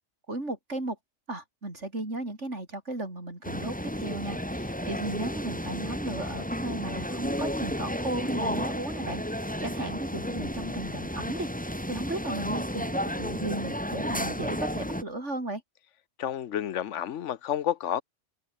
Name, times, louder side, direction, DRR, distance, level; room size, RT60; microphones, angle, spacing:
voice 1, 0.3-1.0 1.3-15.6, right 2 dB, 75° right, 6.1 m, -35 dB
sound 1, 3.4-15.0, equal, 5° left, 3.9 m, -32 dB
voice 2, 16.2-18.0, left 10 dB, 80° left, 1.2 m, -30 dB
open air
omnidirectional pair, 1.2 m